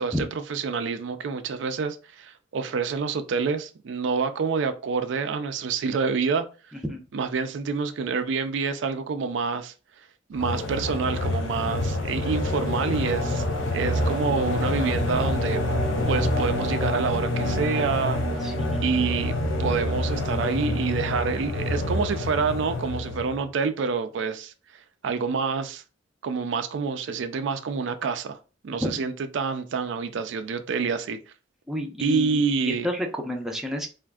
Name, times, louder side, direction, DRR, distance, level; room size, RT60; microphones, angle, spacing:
voice 1, 0.0-6.5 7.1-9.7 10.3-13.4 13.7-15.6 16.1-18.5 18.8-24.5 25.0-25.8 26.2-28.4 28.6-31.2 32.0-32.9, right 5 dB, 70° right, 0.4 m, -27 dB
sound 1, 10.3-23.4, left 1 dB, 85° left, 0.6 m, -27 dB
voice 2, 18.4-18.8 28.8-29.1 31.7-33.9, left 1 dB, ahead, 0.5 m, -30 dB
3.4 x 2.5 x 2.3 m
head